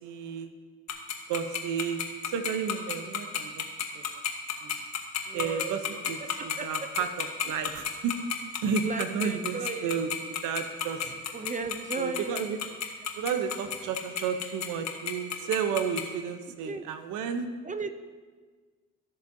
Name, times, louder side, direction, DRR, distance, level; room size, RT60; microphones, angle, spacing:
voice 1, 0.0-0.5 1.3-2.0 2.3-3.6 3.9-4.0 4.6-4.7 5.3-8.2 8.6-10.1 10.4-11.2 12.0-12.6 13.1-17.5, right 7 dB, 90° right, 9 dB, 0.8 m, -32 dB
Tick-tock, 0.9-16.0, left 9 dB, 60° left, 1.1 m, -30 dB
voice 2, 5.3-5.8 6.2-6.9 8.8-9.9 11.3-12.3 16.7-16.8 17.6-17.9, right 4 dB, 25° right, 9 dB, 0.5 m, -36 dB
13.5 x 6.9 x 2.7 m, 1.5 s
cardioid pair, 90°, 30 cm